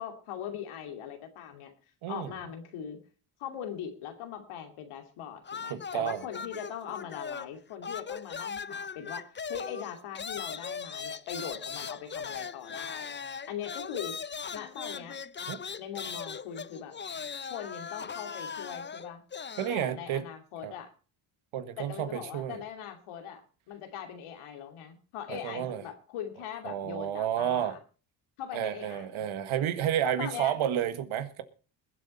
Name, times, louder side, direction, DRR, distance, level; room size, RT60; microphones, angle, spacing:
voice 1, 0.0-1.7 2.1-3.0 3.4-13.1 13.5-14.2 14.5-15.2 15.8-16.9 17.5-19.2 19.7-20.9 21.8-27.8 28.4-29.3 30.0-30.5, left 9 dB, 80° left, 2.8 m, -41 dB
voice 2, 2.0-2.3 5.7-6.2 15.5-15.6 19.6-20.2 20.6-20.7 21.5-22.6 25.3-25.8 26.6-27.8 28.5-31.4, right 10 dB, 70° right, 1.8 m, -31 dB
sound 1, 5.4-7.6 7.8-19.8, left 6 dB, 20° left, 0.6 m, -39 dB
21.5 x 8.0 x 4.2 m
supercardioid pair, 60°, 50 cm